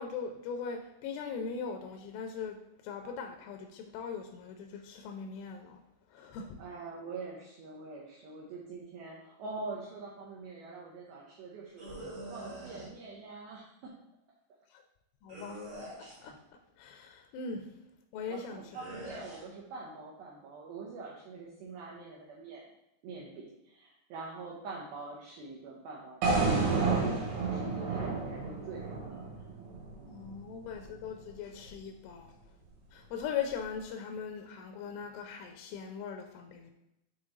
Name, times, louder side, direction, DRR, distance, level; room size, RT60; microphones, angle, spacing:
voice 1, 0.0-5.8 6.1-6.6 14.7-14.8 15.2-15.6 16.0-16.3 16.8-17.8 18.1-18.6 30.1-32.4 32.9-36.7, left 6 dB, 85° left, 5 dB, 3.0 m, -40 dB
voice 2, 6.6-11.9 12.3-14.0 18.3-22.6 23.0-29.3, right 3 dB, 85° right, -3 dB, 2.1 m, -45 dB
sound 1, 11.8-12.9 15.3-16.3 18.7-19.4, right 1 dB, 45° right, 1.5 m, -44 dB
sound 2, 26.2-30.3, right 4 dB, 65° right, 3.1 m, -30 dB
7.2 x 4.4 x 3.8 m, 0.88 s
omnidirectional pair, 5.4 m